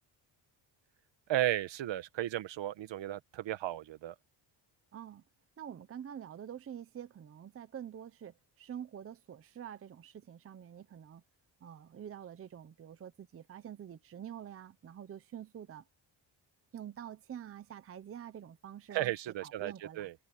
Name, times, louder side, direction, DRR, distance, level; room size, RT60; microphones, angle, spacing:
voice 1, 1.3-4.1 18.9-20.1, right 13 dB, 65° right, 1.3 m, -34 dB
voice 2, 4.9-5.2 5.6-11.2 11.6-15.8 16.7-19.1 19.4-20.1, right 9 dB, 30° right, 0.6 m, -47 dB
cardioid pair, 180°, 48 cm